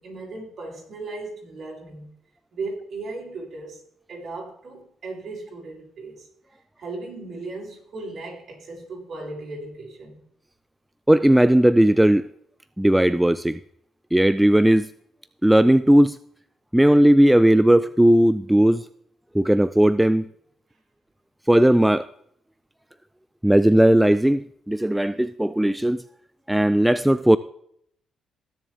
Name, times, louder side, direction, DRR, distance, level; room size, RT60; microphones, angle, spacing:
voice 1, 0.0-2.1 2.5-3.8 4.1-6.3 6.8-10.2, right 3 dB, 55° right, 6.0 m, -36 dB
voice 2, 11.1-12.3 12.8-13.6 14.1-14.9 15.4-16.2 16.7-18.8 19.3-20.3 21.5-22.1 23.4-26.0 26.5-27.4, right 1 dB, 5° right, 0.4 m, -17 dB
19.0 x 7.3 x 3.5 m
cardioid pair, 90°, 0 cm